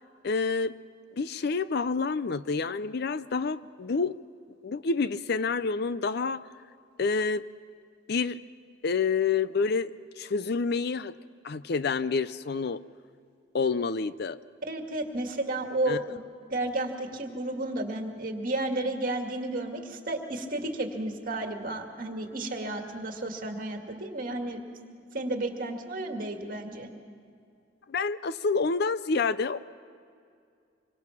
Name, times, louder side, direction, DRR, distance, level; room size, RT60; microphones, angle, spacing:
voice 1, 0.2-0.8 1.1-4.2 4.6-6.4 7.0-7.5 8.1-8.4 8.8-11.1 11.4-12.8 13.5-14.4 15.9-16.0 27.9-29.6, left 4 dB, 55° left, 15 dB, 0.5 m, -28 dB
voice 2, 14.7-24.6 25.1-26.9, right 2 dB, 45° right, 3 dB, 2.3 m, -32 dB
26.0 x 23.5 x 6.0 m, 2.4 s
head